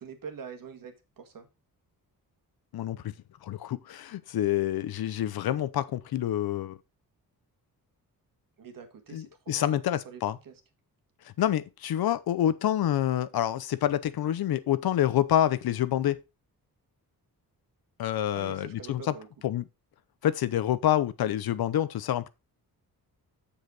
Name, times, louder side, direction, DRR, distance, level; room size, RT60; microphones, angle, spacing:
voice 1, 0.0-1.5 8.6-10.6 18.3-19.3, right 6 dB, 60° right, 1.8 m, -45 dB
voice 2, 2.7-3.1 3.4-6.8 9.1-10.4 11.4-16.2 18.0-19.1 19.4-19.6 20.2-22.3, left 11 dB, 80° left, 0.8 m, -27 dB
7.4 x 6.7 x 4.0 m
wide cardioid pair, 120°, 37 cm